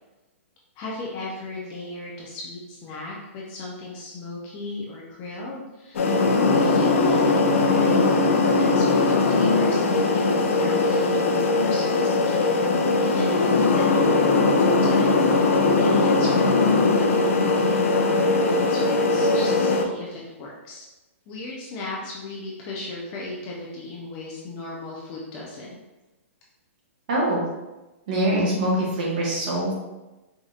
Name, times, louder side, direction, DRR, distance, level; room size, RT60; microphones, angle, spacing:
voice 1, 0.8-6.2 6.5-8.1 8.5-12.6 13.0-14.2 14.5-20.9 21.3-25.8, left 2 dB, 20° left, -4 dB, 0.4 m, -35 dB
sound 1, 6.0-19.9, left 3 dB, 75° left, 0.6 m, -20 dB
voice 2, 27.1-27.4 28.1-29.7, right 1 dB, 35° right, -4 dB, 1.0 m, -23 dB
4.8 x 2.7 x 2.4 m, 1.1 s
hypercardioid pair, 175°, 7 cm